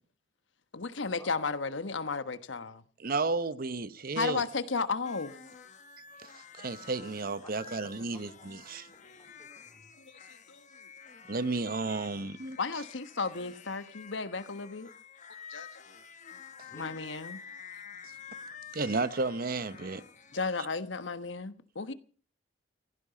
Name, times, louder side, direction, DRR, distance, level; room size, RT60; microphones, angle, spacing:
voice 1, 0.7-2.8 4.1-5.3 10.1-10.7 12.6-14.9 15.5-15.7 16.7-17.4 20.3-21.9, left 4 dB, 80° left, 1.2 m, -34 dB
voice 2, 3.0-4.4 6.2-8.9 11.3-12.6 16.6-16.7 18.7-20.0, right 3 dB, 50° right, 0.8 m, -33 dB
sound 1, 5.0-20.4, left 7 dB, 40° left, 1.3 m, -50 dB
voice 3, 7.4-7.7 8.1-8.3 8.9-9.9 16.7-16.9, left 1 dB, 15° left, 2.9 m, -55 dB
17.5 x 15.0 x 5.1 m
head